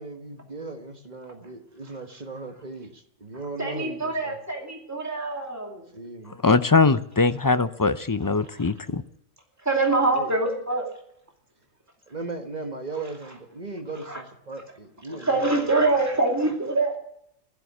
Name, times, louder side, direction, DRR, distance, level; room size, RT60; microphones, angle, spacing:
voice 1, 0.0-4.4 5.9-6.4 10.1-10.3 12.1-15.8, right 3 dB, 35° right, 5 dB, 1.6 m, -37 dB
voice 2, 3.3-5.9 8.5-8.7 9.6-10.9 13.9-14.2 15.1-17.0, right 2 dB, 15° right, 1 dB, 2.7 m, -25 dB
voice 3, 6.4-9.0, left 4 dB, 35° left, 11 dB, 0.3 m, -21 dB
15.5 x 12.5 x 6.1 m, 0.71 s
omnidirectional pair, 1.3 m